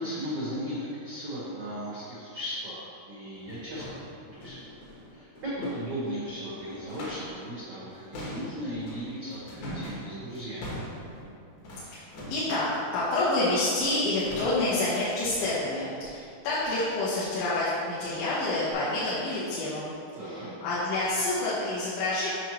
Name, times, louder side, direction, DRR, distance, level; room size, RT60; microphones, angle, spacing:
voice 1, 0.0-3.8 4.3-4.7 5.1-10.7 20.1-20.5, equal, 80° right, -9 dB, 1.3 m, -36 dB
sound 1, 2.6-2.7 3.2-7.5 7.7-12.6 13.7-14.0 14.2-14.9 15.3-15.6 16.0-16.2 16.6-16.8 17.3-17.5 18.0-18.1 18.7-18.8, equal, 60° left, 2.2 m, -42 dB
voice 2, 12.3-19.9 20.2-22.3, left 2 dB, 80° left, -10 dB, 3.5 m, -28 dB
9.1 x 5.6 x 3.1 m, 2.4 s
omnidirectional pair, 5.1 m